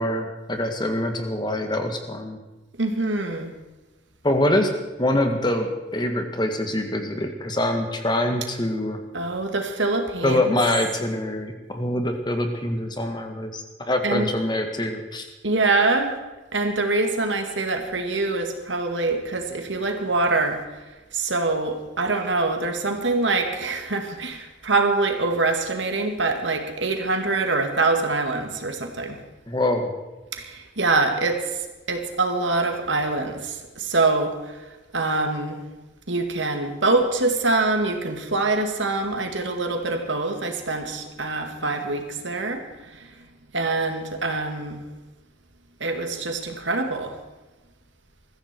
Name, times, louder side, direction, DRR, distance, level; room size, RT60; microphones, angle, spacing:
voice 1, 0.0-2.4 4.2-4.7 5.0-9.0 10.2-15.3 29.5-29.9, left 1 dB, 25° left, 5 dB, 1.7 m, -24 dB
voice 2, 2.8-3.5 9.1-10.6 14.0-14.3 15.4-16.2 16.5-20.6 21.1-29.2 30.3-31.6 31.9-34.6 34.9-35.6 36.1-42.6 42.9-43.1 43.5-44.8 45.8-47.2, right 3 dB, 85° right, 4 dB, 2.4 m, -24 dB
21.5 x 14.5 x 4.6 m, 1.1 s
head